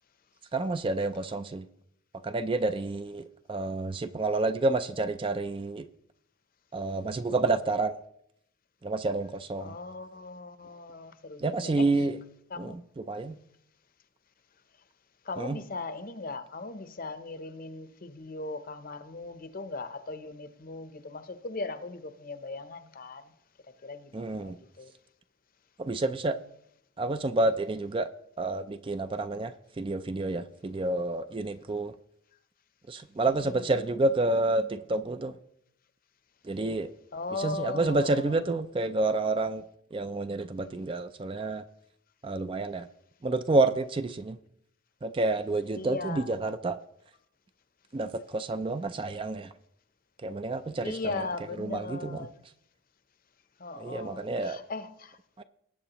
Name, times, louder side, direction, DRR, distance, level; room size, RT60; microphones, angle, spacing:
voice 1, 0.5-1.6 2.2-5.9 6.7-8.0 8.8-9.8 11.4-12.2 12.6-13.4 15.4-15.6 24.1-24.6 25.8-26.4 27.0-28.1 28.4-31.9 32.9-35.4 36.4-36.9 37.4-39.6 39.9-41.6 42.2-42.9 43.2-44.4 45.0-46.8 47.9-49.5 50.2-51.0 51.6-52.3 53.8-54.6 55.4-55.5, right 2 dB, 25° right, 0.3 m, -29 dB
voice 2, 9.6-11.9 12.5-12.8 15.2-23.3 23.8-24.9 33.4-33.7 37.1-38.4 45.8-46.4 50.8-52.4 53.6-55.2, left 3 dB, 40° left, 0.7 m, -38 dB
19.5 x 8.3 x 3.0 m
head